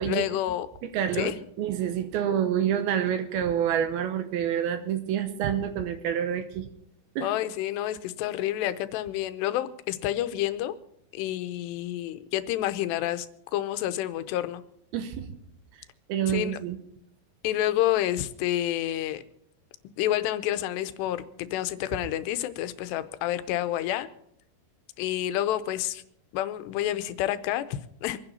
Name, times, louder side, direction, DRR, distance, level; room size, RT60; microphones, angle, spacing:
voice 1, 0.1-0.7 1.2-1.4 7.2-10.8 11.1-13.3 13.5-14.6 16.3-16.6 17.4-19.2 20.0-24.1 25.0-26.0 26.3-28.2, left 13 dB, 90° left, 12 dB, 2.8 m, -29 dB
voice 2, 0.8-6.7 7.2-7.3 14.9-15.3 16.1-16.8, right 9 dB, 75° right, 9 dB, 2.6 m, -28 dB
25.0 x 9.8 x 4.2 m, 0.74 s
omnidirectional pair, 4.8 m